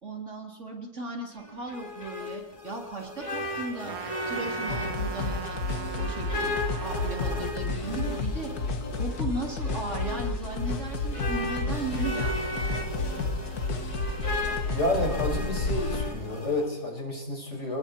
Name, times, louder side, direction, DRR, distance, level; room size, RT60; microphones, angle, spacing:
voice 1, 0.0-4.0 4.3-6.5 6.8-8.5 8.9-12.7, right 2 dB, 50° right, 1 dB, 3.8 m, -36 dB
sound 1, 1.4-16.7, left 1 dB, 20° left, 3.1 m, -36 dB
Trumpet, 3.9-7.6, right 9 dB, 70° right, 1.4 m, -40 dB
sound 2, 4.7-16.1, left 3 dB, 80° left, 2.1 m, -31 dB
voice 2, 14.7-17.8, left 1 dB, 50° left, 0 dB, 6.4 m, -30 dB
28.0 x 20.5 x 4.6 m, 1.0 s
omnidirectional pair, 1.6 m